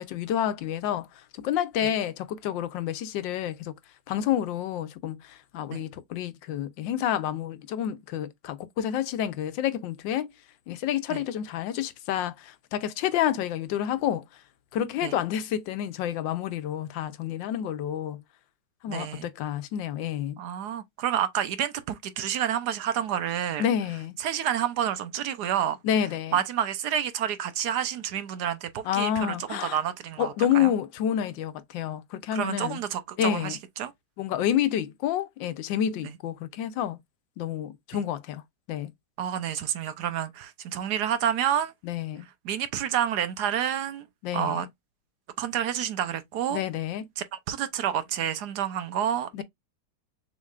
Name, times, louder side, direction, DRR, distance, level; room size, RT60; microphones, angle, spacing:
voice 1, 0.0-3.7 4.1-10.3 10.7-14.4 14.7-18.2 18.8-20.4 23.6-24.2 25.8-26.4 28.8-29.8 30.2-32.8 33.2-33.6 34.2-37.0 37.4-38.4 38.7-38.9 41.8-42.3 44.2-44.7 46.5-47.1 49.3-49.4, left 10 dB, 85° left, 1.4 m, -29 dB
voice 2, 18.9-19.3 20.4-23.6 24.2-25.8 26.3-30.7 32.3-33.9 37.9-38.0 39.2-41.7 42.4-44.1 44.3-44.7 45.4-46.6 47.2-49.4, right 10 dB, 70° right, 1.2 m, -29 dB
6.3 x 3.0 x 2.4 m
omnidirectional pair, 2.0 m